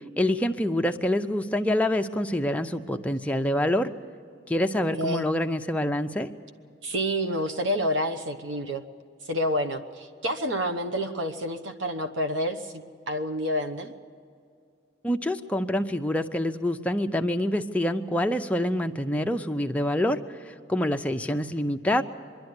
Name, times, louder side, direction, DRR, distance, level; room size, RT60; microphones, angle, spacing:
voice 1, 0.2-3.9 4.5-6.3 15.0-20.2 20.4-22.0, left 1 dB, 5° left, 5 dB, 0.6 m, -26 dB
voice 2, 5.0-5.3 6.8-8.8 9.3-13.9, equal, 80° right, 8 dB, 1.0 m, -28 dB
24.5 x 11.5 x 9.7 m, 2.4 s
head